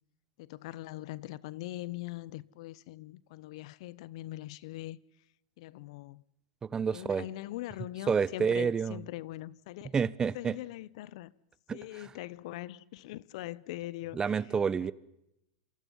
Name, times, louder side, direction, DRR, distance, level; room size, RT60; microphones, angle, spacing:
voice 1, 0.4-5.0 5.6-6.2 6.9-9.9 10.3-11.3 11.7-14.4 14.8-14.9, left 16 dB, 65° left, 0.9 m, -42 dB
voice 2, 6.6-7.2 8.1-9.0 9.9-10.6 11.7-12.1 14.1-14.9, right 6 dB, 20° right, 0.9 m, -29 dB
27.5 x 27.0 x 5.6 m
hypercardioid pair, 110°, 3 cm